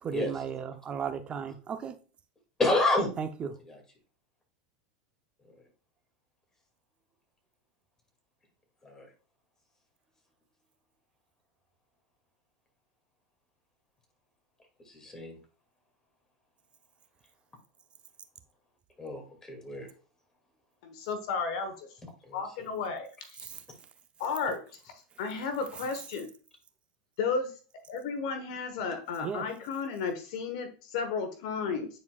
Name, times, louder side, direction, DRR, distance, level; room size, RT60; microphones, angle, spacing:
voice 1, 0.0-2.0 3.2-3.6 23.4-23.6 29.2-29.4, right 6 dB, 30° right, 9 dB, 0.7 m, -35 dB
voice 2, 2.6-3.1 8.8-9.1 14.9-15.4 19.0-19.9 22.3-22.4, left 2 dB, 15° left, 3 dB, 2.3 m, -28 dB
voice 3, 20.8-21.9 22.3-23.5 24.2-24.9 25.2-26.3 27.2-27.5 27.9-31.9, left 5 dB, 70° left, 7 dB, 1.2 m, -33 dB
9.5 x 4.4 x 2.4 m, 0.37 s
supercardioid pair, 115°, 4 cm